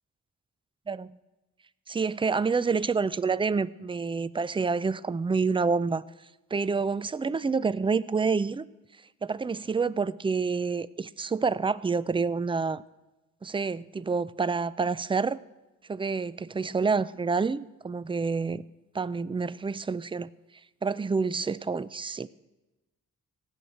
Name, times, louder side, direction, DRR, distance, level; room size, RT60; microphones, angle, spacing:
voice 1, 1.9-6.0 6.5-8.7 9.2-12.8 13.4-15.4 15.9-18.6 18.9-20.3 20.8-22.3, right 4 dB, 15° right, 17 dB, 0.4 m, -28 dB
16.5 x 6.4 x 9.2 m, 1.1 s
cardioid pair, 85°, 32 cm